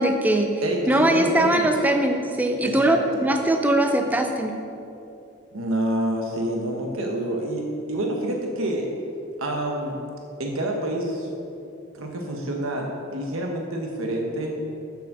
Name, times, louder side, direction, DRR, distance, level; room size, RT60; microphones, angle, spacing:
voice 1, 0.0-0.6 0.9-4.6, right 1 dB, 10° right, 4 dB, 0.5 m, -21 dB
voice 2, 0.6-1.7 2.6-3.0 5.5-8.9 9.4-10.0 10.4-11.3 11.9-14.6, right 1 dB, 85° right, 1 dB, 1.1 m, -27 dB
7.6 x 7.1 x 6.6 m, 2.7 s
head